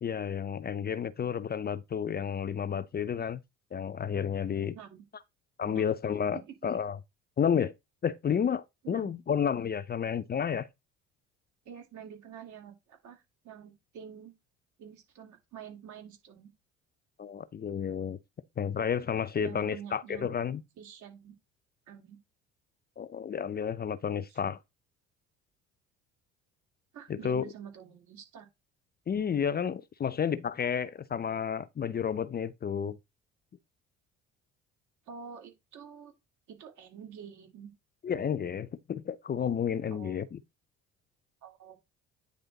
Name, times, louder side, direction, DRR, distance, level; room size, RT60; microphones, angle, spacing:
voice 1, 0.0-3.4 3.7-4.7 5.6-7.0 7.4-7.7 8.0-10.7 17.2-18.2 18.6-20.6 23.0-24.6 27.1-27.5 29.1-33.0 38.0-40.4, left 7 dB, 30° left, 0.6 m, -31 dB
voice 2, 4.5-5.1 5.6-5.9 6.5-6.6 8.8-9.1 11.6-14.3 14.8-16.5 19.4-20.3 20.8-21.3 21.9-22.2 24.4-24.5 26.9-28.5 35.1-36.1 36.5-37.7 39.9-40.3 41.4-41.8, right 8 dB, 60° right, 2.5 m, -47 dB
9.4 x 3.4 x 4.0 m
hypercardioid pair, 60°, 33 cm